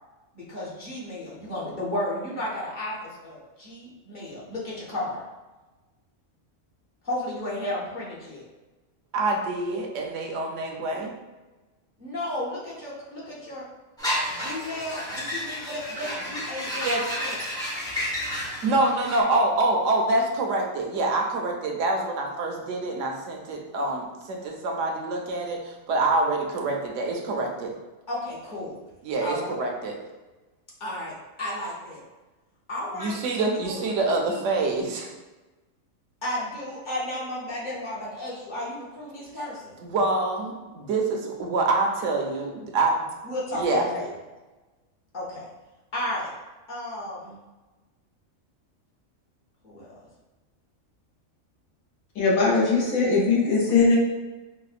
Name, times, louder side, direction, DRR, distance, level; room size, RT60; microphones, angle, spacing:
voice 1, 0.3-5.2 7.0-8.4 12.0-13.7 14.3-17.4 28.1-28.8 29.2-29.5 30.8-32.0 32.7-33.8 34.1-34.4 36.2-39.7 43.2-44.1 45.1-45.5 45.9-46.3 46.7-47.4 49.6-50.0, left 1 dB, 45° left, -6 dB, 0.8 m, -33 dB
voice 2, 9.1-11.1 16.8-17.0 18.6-27.7 29.0-30.0 32.9-35.1 39.8-43.1 43.5-43.9, right 2 dB, 70° right, 1 dB, 0.9 m, -26 dB
sound 1, 14.0-19.2, equal, 5° left, 0.3 m, -31 dB
voice 3, 52.2-54.0, left 4 dB, 85° left, -4 dB, 1.2 m, -20 dB
4.9 x 2.0 x 2.4 m, 1.2 s
omnidirectional pair, 1.4 m